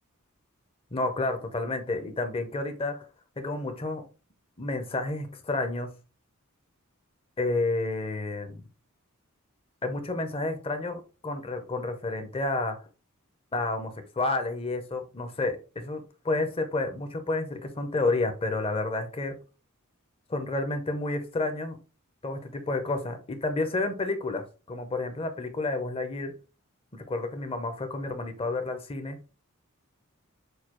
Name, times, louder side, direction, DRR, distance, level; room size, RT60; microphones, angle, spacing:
voice 1, 0.9-3.1 3.4-4.0 4.6-5.9 7.4-8.6 9.8-12.8 13.5-19.4 20.3-21.8 22.2-26.3 26.9-29.2, left 2 dB, 25° left, 0.7 m, -30 dB
6.4 x 2.3 x 3.0 m
head